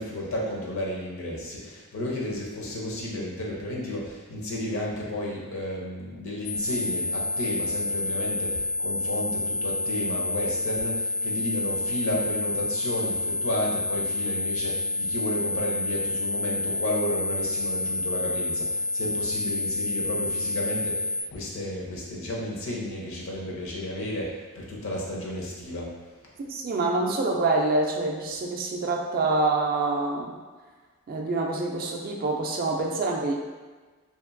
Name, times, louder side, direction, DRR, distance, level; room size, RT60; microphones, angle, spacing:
voice 1, 0.0-25.9, left 1 dB, 65° left, -3 dB, 0.7 m, -32 dB
sound 1, 6.5-21.2, left 2 dB, 35° left, 0.3 m, -29 dB
voice 2, 26.4-30.4 31.1-33.3, right 2 dB, 40° right, 1 dB, 0.3 m, -26 dB
2.9 x 2.5 x 2.5 m, 1.3 s
head